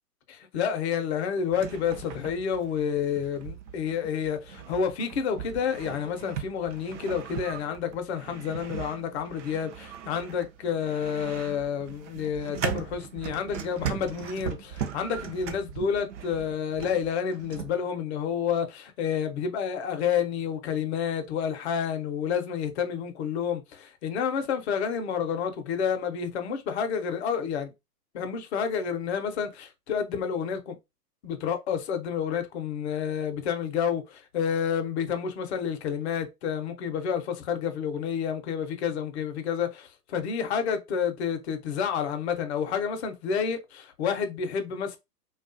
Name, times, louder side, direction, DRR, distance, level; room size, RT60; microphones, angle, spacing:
voice 1, 0.3-27.7 28.1-30.8 31.2-45.0, left 7 dB, 45° left, 0.6 m, -29 dB
Old Mechanism, 1.5-17.8, right 8 dB, 50° right, 0.5 m, -39 dB
2.3 x 2.3 x 2.5 m
hypercardioid pair, 120°, 49 cm